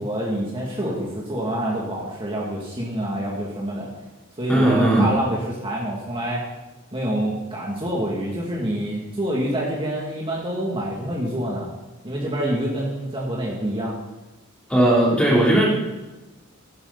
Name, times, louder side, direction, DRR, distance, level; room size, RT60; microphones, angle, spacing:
voice 1, 0.0-3.9 4.4-6.4 6.9-11.8 12.0-14.0, right 1 dB, 25° right, -4 dB, 2.5 m, -27 dB
voice 2, 4.5-5.1 14.7-15.7, right 1 dB, 5° left, -4 dB, 3.5 m, -17 dB
16.0 x 12.5 x 4.1 m, 1.1 s
head